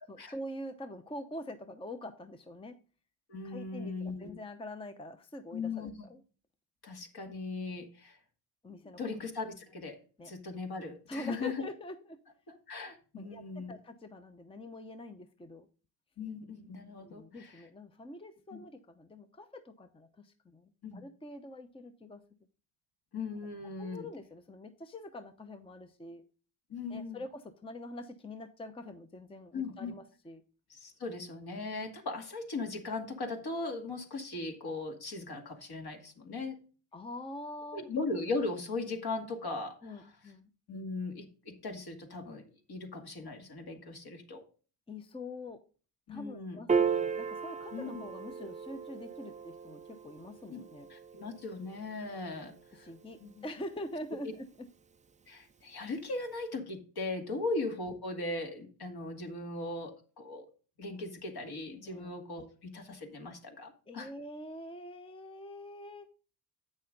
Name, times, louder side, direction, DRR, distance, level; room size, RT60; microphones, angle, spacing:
voice 1, 0.1-2.8 3.4-6.2 8.6-9.0 10.2-10.3 11.1-12.2 13.1-15.7 17.0-22.2 23.6-26.2 26.9-30.4 36.9-37.9 39.8-40.5 44.9-45.6 46.1-50.9 52.7-54.7 57.3-57.5 61.8-62.1 63.9-66.1, left 1 dB, 10° left, 9 dB, 0.8 m, -45 dB
voice 2, 3.3-4.3 5.5-5.9 6.8-8.2 9.0-10.0 10.3-11.5 12.5-13.7 16.2-17.6 18.5-18.6 20.8-21.0 23.1-24.1 26.7-27.2 29.5-29.9 30.7-36.6 37.7-39.9 40.7-42.4 42.7-44.4 46.1-46.6 47.7-48.0 50.5-50.6 50.9-52.9 53.2-53.4 55.3-60.5 60.8-64.1, left 3 dB, 50° left, 3 dB, 2.2 m, -38 dB
Piano, 46.7-53.3, right 6 dB, 15° right, 0.4 m, -36 dB
8.6 x 6.4 x 3.9 m, 0.38 s
supercardioid pair, 70°, 49 cm